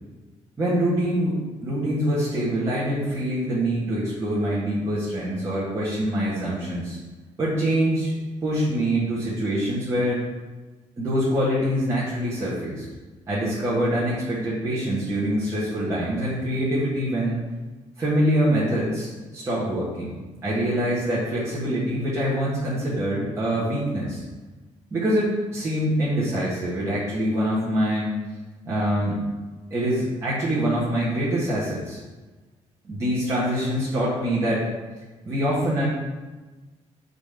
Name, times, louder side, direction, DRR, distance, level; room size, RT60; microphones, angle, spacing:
voice 1, 0.6-7.0 7.4-8.1 8.4-10.2 11.0-12.8 13.3-17.4 18.0-20.1 20.4-24.2 24.9-28.2 28.6-29.2 29.7-32.0 32.8-34.6 35.2-35.9, equal, 20° right, -9 dB, 1.4 m, -24 dB
6.2 x 4.0 x 5.1 m, 1.2 s
cardioid pair, 170°, 13 cm